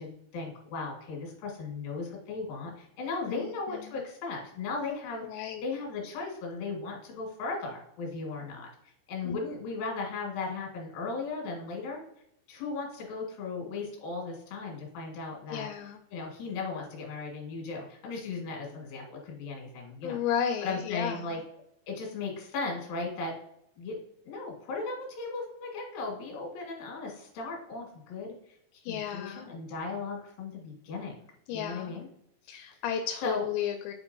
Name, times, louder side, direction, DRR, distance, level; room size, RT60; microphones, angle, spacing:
voice 1, 0.0-8.7 9.1-12.0 12.5-15.7 16.1-20.2 20.6-21.4 21.9-23.3 23.8-24.0 24.2-28.3 28.7-31.1 31.5-32.1 32.5-32.6 33.2-33.4, left 3 dB, 60° left, 0 dB, 3.1 m, -36 dB
voice 2, 3.3-4.0 5.2-5.6 9.2-9.4 15.5-16.0 20.0-21.4 28.8-29.5 31.5-32.0 32.5-33.9, left 9 dB, 85° left, 5 dB, 2.8 m, -34 dB
8.2 x 4.4 x 2.6 m, 0.76 s
omnidirectional pair, 5.2 m